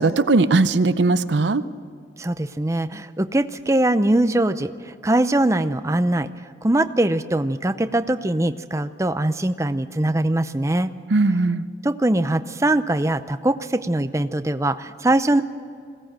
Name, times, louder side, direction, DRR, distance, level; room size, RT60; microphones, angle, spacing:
voice 1, 0.0-1.6 11.1-11.6, right 3 dB, 75° right, 14 dB, 0.7 m, -18 dB
voice 2, 2.2-6.3 6.6-10.9 11.8-15.4, right 1 dB, 15° right, 11 dB, 0.6 m, -22 dB
21.5 x 17.0 x 7.6 m, 2.2 s
head